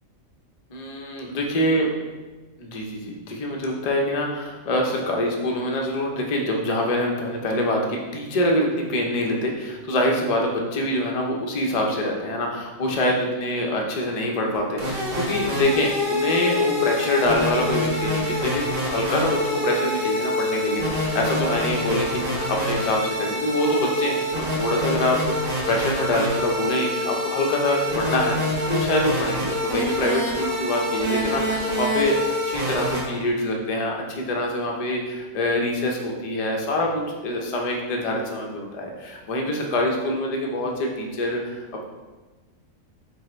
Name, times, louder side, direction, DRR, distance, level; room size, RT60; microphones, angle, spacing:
voice 1, 0.7-1.9 2.6-28.4 28.7-32.2 32.5-41.8, left 1 dB, 50° left, 0 dB, 0.4 m, -25 dB
sound 1, 14.5-33.0, left 1 dB, 70° right, 1.6 m, -26 dB
5.3 x 2.0 x 4.3 m, 1.2 s
omnidirectional pair, 1.4 m